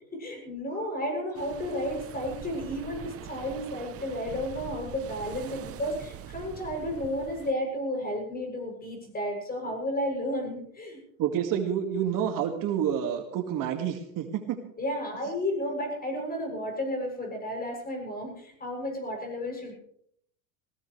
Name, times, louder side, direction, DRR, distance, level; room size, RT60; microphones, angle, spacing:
voice 1, 0.1-11.0 14.8-19.7, left 1 dB, 20° left, 2 dB, 7.7 m, -32 dB
sound 1, 1.3-7.5, right 10 dB, 35° right, 0.9 m, -43 dB
voice 2, 11.2-14.6, right 9 dB, 50° right, 5 dB, 2.2 m, -29 dB
20.0 x 18.0 x 3.3 m, 0.68 s
supercardioid pair, 115°, 42 cm